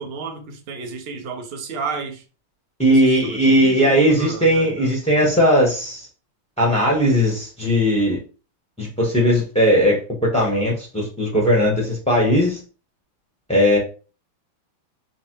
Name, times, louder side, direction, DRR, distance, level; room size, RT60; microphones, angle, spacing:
voice 1, 0.0-2.2 2.9-4.9, right 5 dB, 75° right, 3 dB, 0.5 m, -32 dB
voice 2, 2.8-6.1 6.6-8.2 8.8-12.6 13.5-13.8, equal, 5° left, -2 dB, 0.5 m, -18 dB
5.1 x 2.1 x 4.6 m, 0.35 s
omnidirectional pair, 2.4 m